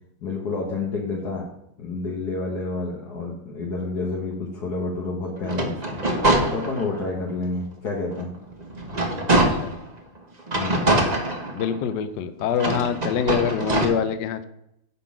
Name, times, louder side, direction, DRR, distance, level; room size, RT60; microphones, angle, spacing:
voice 1, 0.2-1.5 1.8-6.0 6.5-8.3 10.5-10.9, left 3 dB, 55° left, -2 dB, 1.7 m, -29 dB
sound 1, 5.4-7.1 7.6-7.7 8.1-9.9 10.5-11.9 12.5-13.9, right 1 dB, 25° right, 1.1 m, -24 dB
voice 2, 9.3-9.7 11.5-14.4, left 8 dB, 70° left, 11 dB, 1.1 m, -25 dB
9.9 x 3.9 x 7.2 m, 0.78 s
omnidirectional pair, 2.2 m